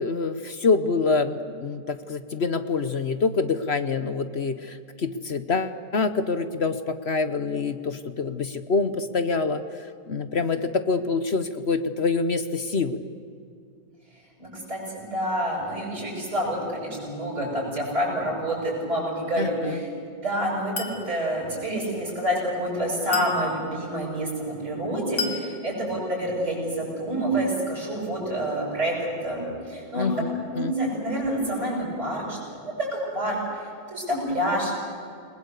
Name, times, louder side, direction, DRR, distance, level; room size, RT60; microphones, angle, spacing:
voice 1, 0.0-13.0 19.4-19.8 29.9-30.7, left 4 dB, 45° left, 10 dB, 1.0 m, -26 dB
voice 2, 14.4-19.9 20.2-32.4 32.8-33.6 33.9-34.7, right 1 dB, 45° right, -4 dB, 8.4 m, -28 dB
Chink clink, 20.8-21.1 23.1-23.5 25.2-25.5, left 5 dB, 75° left, 3.0 m, -31 dB
29.5 x 20.0 x 8.2 m, 2.4 s
omnidirectional pair, 1.9 m